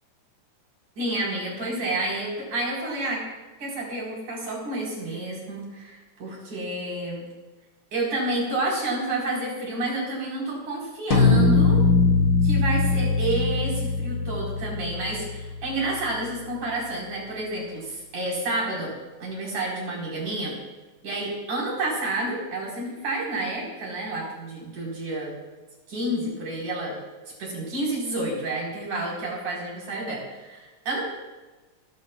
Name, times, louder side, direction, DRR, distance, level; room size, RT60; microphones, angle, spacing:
voice 1, 1.0-3.2 3.6-7.3 7.9-11.8 12.4-18.9 19.2-20.6 21.0-25.3 25.9-27.0 27.4-31.0, right 2 dB, 70° right, -3 dB, 6.0 m, -30 dB
sound 1, 11.1-15.7, left 3 dB, 50° left, 1.4 m, -21 dB
27.0 x 15.0 x 2.4 m, 1.2 s
omnidirectional pair, 3.5 m